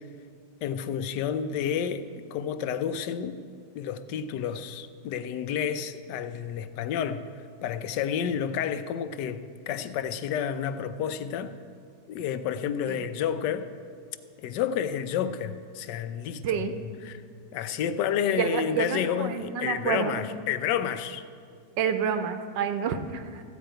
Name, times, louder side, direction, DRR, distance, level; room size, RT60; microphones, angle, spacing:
voice 1, 0.6-3.4 3.7-7.2 7.6-11.5 12.1-13.7 14.4-17.2 17.5-21.2, left 8 dB, 75° left, 12 dB, 1.2 m, -30 dB
voice 2, 18.3-20.2 21.8-23.4, right 7 dB, 75° right, 8 dB, 1.3 m, -28 dB
14.5 x 5.1 x 8.9 m, 2.2 s
omnidirectional pair, 2.0 m